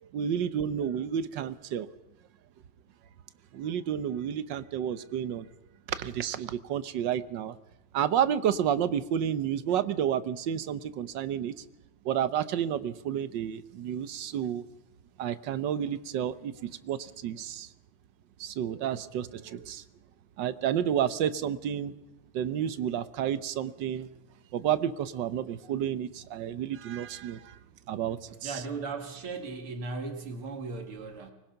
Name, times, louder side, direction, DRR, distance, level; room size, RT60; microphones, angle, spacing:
voice 1, 0.0-1.9 3.5-5.5 5.9-7.6 7.9-11.6 12.0-14.6 15.2-17.7 18.4-19.8 20.4-21.9 22.3-24.1 24.5-27.6 27.9-28.6, right 9 dB, 65° right, 14 dB, 1.4 m, -30 dB
voice 2, 28.4-31.3, right 4 dB, 80° right, 5 dB, 2.8 m, -37 dB
24.5 x 21.0 x 5.8 m, 0.94 s
omnidirectional pair, 2.4 m